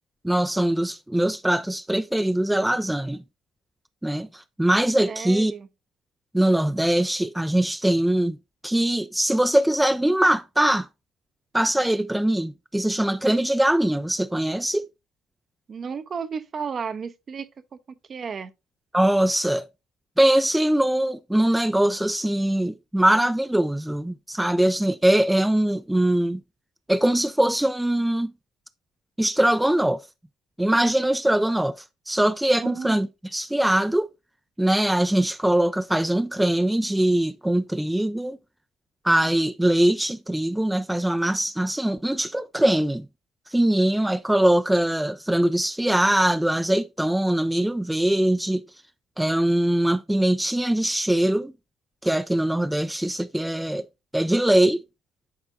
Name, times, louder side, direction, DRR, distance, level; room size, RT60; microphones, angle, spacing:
voice 1, 0.2-3.2 4.0-5.5 6.3-8.4 8.6-10.9 11.5-14.8 18.9-19.7 20.2-26.4 26.9-28.3 29.2-30.0 30.6-31.8 32.1-33.1 33.3-34.1 34.6-38.4 39.0-43.1 43.5-48.6 49.2-51.5 52.0-53.8 54.1-54.8, right 1 dB, 5° right, 0.4 m, -22 dB
voice 2, 5.1-5.7 15.7-17.5 18.1-18.5 32.6-33.0, right 6 dB, 40° right, 0.7 m, -32 dB
10.5 x 4.4 x 2.5 m
hypercardioid pair, 55°, 0 cm